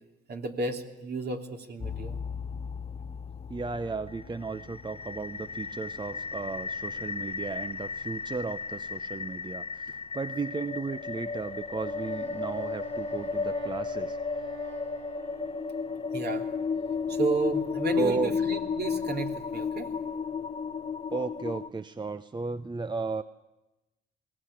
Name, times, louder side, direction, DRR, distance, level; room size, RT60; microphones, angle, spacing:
voice 1, 0.3-2.2 16.1-16.5 17.1-19.9, right 4 dB, 55° right, 4 dB, 2.9 m, -32 dB
sound 1, 1.8-21.7, left 5 dB, 30° left, 0.9 m, -34 dB
voice 2, 3.5-14.2 17.9-18.3 21.1-23.2, right 4 dB, 25° right, 12 dB, 0.8 m, -34 dB
Wind instrument woodwind instrument, 11.8-16.1, right 12 dB, 75° right, 1.5 m, -47 dB
21.5 x 18.5 x 9.9 m, 0.99 s
cardioid pair, 90°, 20 cm